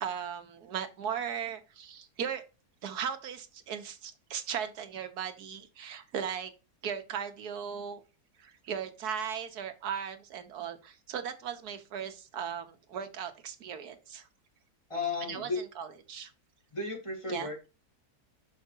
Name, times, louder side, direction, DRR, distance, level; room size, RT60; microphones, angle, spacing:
voice 1, 0.0-2.4 2.8-6.5 6.8-8.0 8.4-14.3 15.3-15.5 15.8-16.3 17.3-17.5, right 8 dB, 75° right, 1.5 m, -37 dB
voice 2, 14.9-15.6 16.7-17.7, left 4 dB, 20° left, 2.5 m, -34 dB
5.8 x 5.6 x 4.4 m
omnidirectional pair, 1.7 m